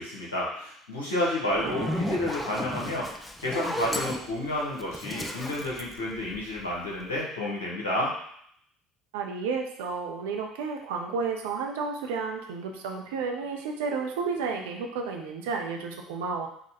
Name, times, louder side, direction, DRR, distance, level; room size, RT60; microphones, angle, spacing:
voice 1, 0.0-3.1 3.4-8.1, left 1 dB, 75° left, -5 dB, 1.2 m, -30 dB
Zipper (clothing), 1.5-6.8, left 1 dB, 10° left, 0.4 m, -34 dB
voice 2, 1.6-2.1 9.1-16.5, right 5 dB, 65° right, 2 dB, 0.6 m, -32 dB
4.1 x 2.3 x 4.1 m, 0.67 s
figure-of-eight pair, 60°, 0 cm